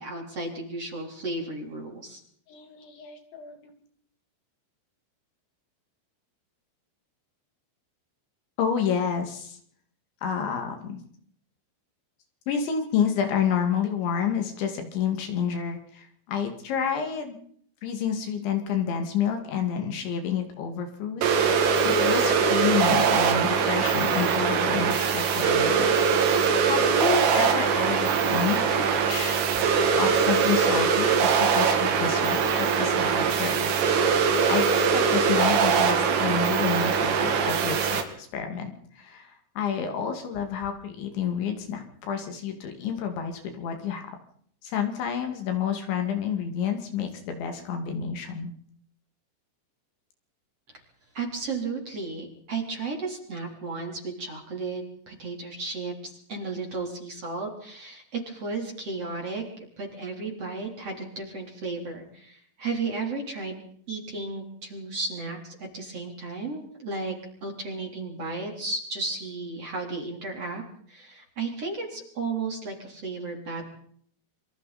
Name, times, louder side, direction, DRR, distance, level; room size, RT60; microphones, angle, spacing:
voice 1, 0.0-2.2 51.1-63.6 63.9-67.1 67.4-70.6 70.9-73.7, right 3 dB, 30° right, 1 dB, 4.2 m, -34 dB
voice 2, 2.5-3.6 8.6-9.6 10.2-11.0 12.5-17.4 17.8-21.2 21.8-25.9 26.6-29.4 29.9-34.0 34.5-44.1 44.6-48.5, left 7 dB, 65° left, 5 dB, 4.4 m, -29 dB
sound 1, 21.2-38.0, right 6 dB, 80° right, 5.1 m, -22 dB
26.5 x 24.5 x 4.3 m, 0.62 s
omnidirectional pair, 5.8 m